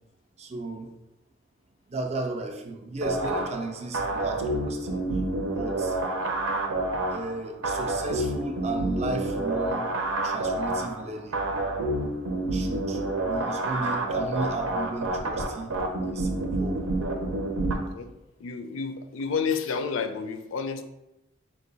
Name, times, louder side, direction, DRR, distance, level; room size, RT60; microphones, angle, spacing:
voice 1, 0.4-0.9 1.9-5.0 5.6-6.0 7.1-9.9 10.2-11.4 12.5-15.7 16.0-16.8, right 2 dB, 30° right, 4 dB, 0.4 m, -34 dB
sound 1, 3.0-17.7, right 2 dB, 80° right, 0.7 m, -28 dB
voice 2, 18.4-20.8, left 5 dB, 70° left, 8 dB, 0.4 m, -30 dB
4.5 x 2.3 x 3.9 m, 0.90 s
head